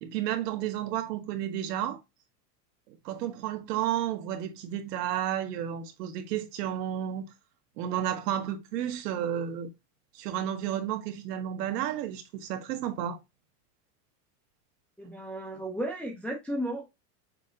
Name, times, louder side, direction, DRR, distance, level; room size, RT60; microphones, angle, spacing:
voice 1, 0.0-2.0 2.9-7.2 7.8-9.7 10.1-13.2, right 11 dB, 70° right, 1.1 m, -32 dB
voice 2, 15.0-16.8, right 1 dB, 5° left, 0.4 m, -34 dB
6.3 x 2.1 x 3.6 m
supercardioid pair, 140°, 50 cm